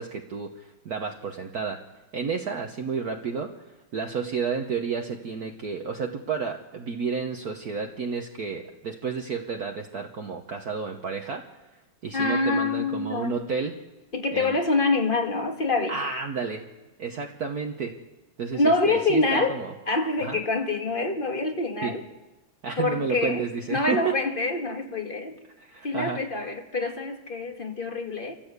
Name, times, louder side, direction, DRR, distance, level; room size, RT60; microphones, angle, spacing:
voice 1, 0.0-1.8 2.1-3.6 3.9-11.4 12.0-13.7 14.3-14.5 15.9-16.6 17.0-18.0 18.4-19.7 20.2-20.4 21.8-22.0 22.6-24.1 25.6-26.3, right 5 dB, 50° right, 3 dB, 1.5 m, -31 dB
voice 2, 12.1-13.4 14.1-16.0 18.5-22.0 22.8-25.4 25.8-28.3, left 3 dB, 25° left, 5 dB, 1.8 m, -26 dB
27.5 x 14.5 x 8.2 m, 1.1 s
omnidirectional pair, 2.3 m